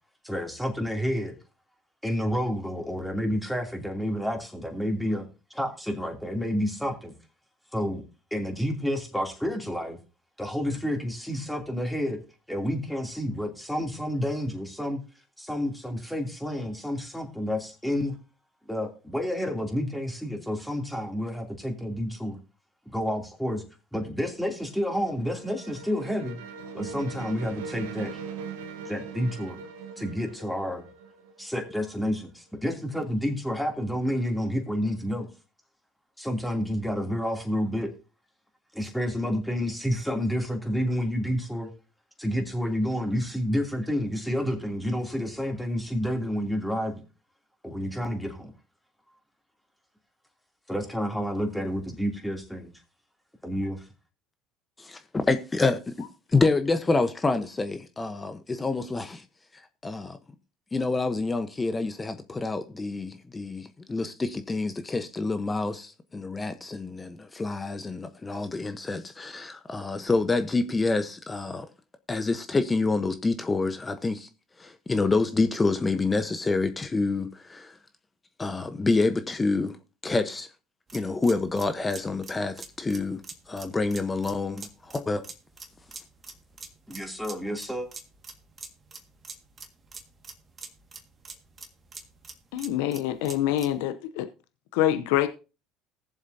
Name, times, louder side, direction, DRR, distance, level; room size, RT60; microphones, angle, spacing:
voice 1, 0.2-1.3 2.0-7.1 7.7-8.0 8.3-10.0 10.4-12.2 12.5-15.0 15.4-18.2 18.7-22.4 22.9-23.6 23.9-26.4 26.7-28.2 28.8-29.6 30.0-30.9 31.4-35.3 36.2-37.9 38.7-41.7 42.2-47.0 47.6-48.5 50.7-52.7 53.4-53.9 86.9-87.9, equal, ahead, 3.0 m, -29 dB
sound 1, 24.6-32.0, right 6 dB, 80° right, 1.2 m, -41 dB
voice 2, 54.8-55.9 56.3-59.2 59.8-60.2 60.7-71.7 72.1-74.3 74.6-77.7 78.4-79.8 80.0-80.5 80.9-83.2 83.5-85.2, left 3 dB, 20° left, 1.0 m, -27 dB
sound 2, 80.9-93.8, right 4 dB, 35° right, 1.9 m, -45 dB
voice 3, 92.5-94.3 94.7-95.3, left 12 dB, 75° left, 0.7 m, -25 dB
19.0 x 7.3 x 2.8 m
hypercardioid pair, 75°, 0 cm